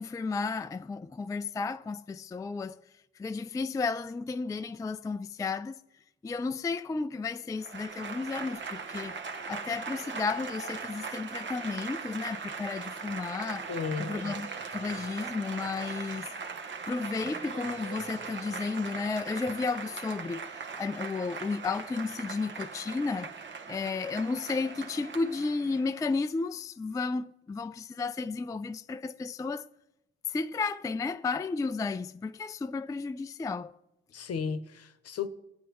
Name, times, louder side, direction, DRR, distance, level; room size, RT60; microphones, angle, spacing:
voice 1, 0.0-2.8 3.2-5.8 6.2-9.2 9.5-13.7 14.0-16.3 16.8-23.3 23.7-29.7 30.3-33.7, left 4 dB, 10° left, 0.3 m, -33 dB
Applause / Crowd, 7.6-26.1, right 5 dB, 40° right, 1.0 m, -40 dB
voice 2, 13.7-14.1 34.1-35.3, left 6 dB, 55° left, 0.9 m, -34 dB
17.5 x 8.4 x 3.1 m
supercardioid pair, 60°, 29 cm